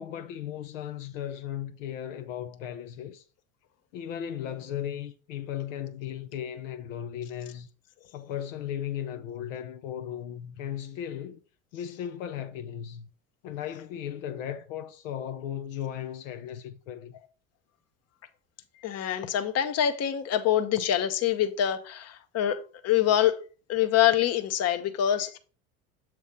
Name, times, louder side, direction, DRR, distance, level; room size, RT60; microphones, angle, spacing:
voice 1, 0.0-3.2 3.9-7.7 8.1-11.4 11.7-13.1 13.4-17.1, left 10 dB, 70° left, 0.7 m, -36 dB
voice 2, 18.8-22.6 22.8-23.4 23.7-25.4, left 10 dB, 40° left, 0.9 m, -25 dB
7.2 x 3.1 x 5.2 m
hypercardioid pair, 80°, 40 cm